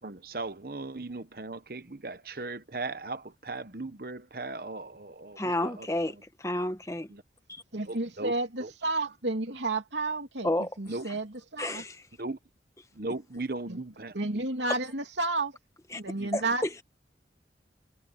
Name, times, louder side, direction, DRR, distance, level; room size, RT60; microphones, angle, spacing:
voice 1, 0.0-6.2 7.1-7.2 7.8-8.3 8.6-8.7 10.9-11.1 12.2-12.4 12.9-14.2 16.1-16.5, right 2 dB, 55° right, 1.1 m, -38 dB
voice 2, 5.4-7.1 7.5-7.6 10.4-10.7 11.6-12.0 15.9-16.0 16.3-16.8, left 1 dB, 15° left, 1.3 m, -31 dB
voice 3, 7.7-10.5 10.8-11.8 13.7-13.8 14.1-15.6 16.0-16.6, right 2 dB, 90° right, 2.9 m, -31 dB
head